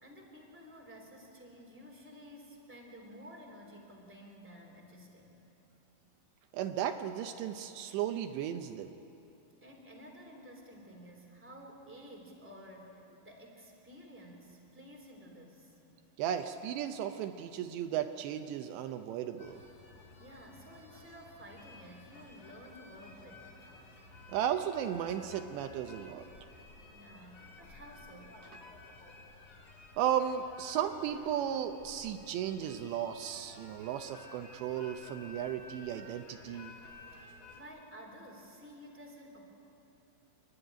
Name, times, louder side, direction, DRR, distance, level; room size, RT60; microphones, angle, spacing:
voice 1, 0.0-5.4 9.6-15.7 20.2-23.7 26.9-28.4 37.1-37.2 37.5-39.6, equal, 5° right, 0 dB, 1.8 m, -52 dB
voice 2, 6.5-8.9 16.2-19.6 24.3-26.2 30.0-36.8, right 10 dB, 80° right, 7 dB, 2.8 m, -35 dB
sound 1, 19.4-37.6, left 3 dB, 35° left, 3.0 m, -54 dB
29.0 x 12.0 x 9.9 m, 2.9 s
omnidirectional pair, 5.5 m